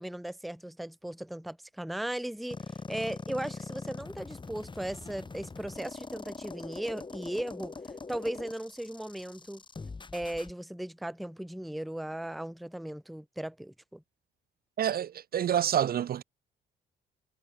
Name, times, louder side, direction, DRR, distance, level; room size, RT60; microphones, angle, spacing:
voice 1, 0.0-7.8 8.1-9.6 10.1-14.0, right 1 dB, ahead, 0.5 m, -37 dB
sound 1, 2.5-10.5, left 4 dB, 25° left, 1.4 m, -43 dB
voice 2, 14.8-16.2, right 10 dB, 50° right, 0.5 m, -28 dB
cardioid pair, 90°, 20 cm